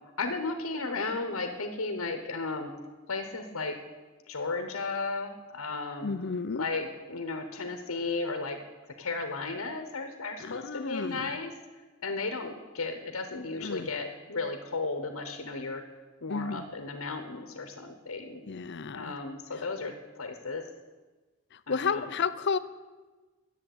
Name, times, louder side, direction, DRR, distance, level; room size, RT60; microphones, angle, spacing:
voice 1, 0.2-2.7 3.1-3.8 4.3-6.1 6.6-8.6 9.0-11.5 12.0-15.8 16.2-18.4 18.9-20.6 21.7-22.1, left 3 dB, 70° left, 7 dB, 1.1 m, -34 dB
voice 2, 6.0-6.7 10.4-11.2 13.6-13.9 16.3-16.6 18.4-19.1 21.5-22.6, left 5 dB, 50° left, 13 dB, 0.5 m, -32 dB
10.5 x 7.4 x 9.2 m, 1.3 s
head